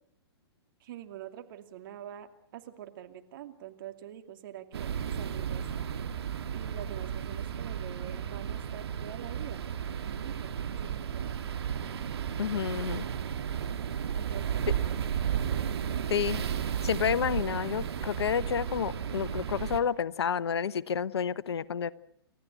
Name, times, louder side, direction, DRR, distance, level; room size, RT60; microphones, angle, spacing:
voice 1, 0.8-5.6 6.5-9.6 10.0-11.4 14.2-15.2, right 11 dB, 50° right, 7 dB, 2.6 m, -46 dB
sound 1, 4.7-19.8, right 8 dB, 70° right, 2.3 m, -33 dB
voice 2, 12.4-13.0 16.1-16.4 16.8-21.9, left 7 dB, 70° left, 17 dB, 1.0 m, -30 dB
30.0 x 14.5 x 9.3 m, 0.74 s
hypercardioid pair, 120°, 14 cm